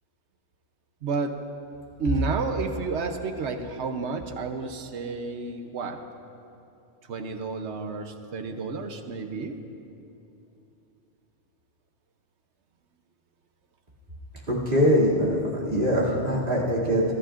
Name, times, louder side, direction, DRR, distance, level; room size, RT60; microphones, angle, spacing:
voice 1, 1.0-1.4 2.0-6.0 7.1-9.6, right 4 dB, 75° right, 6 dB, 1.1 m, -31 dB
voice 2, 14.5-17.0, equal, 50° right, -4 dB, 2.9 m, -23 dB
22.0 x 14.5 x 2.5 m, 2.8 s
omnidirectional pair, 1.2 m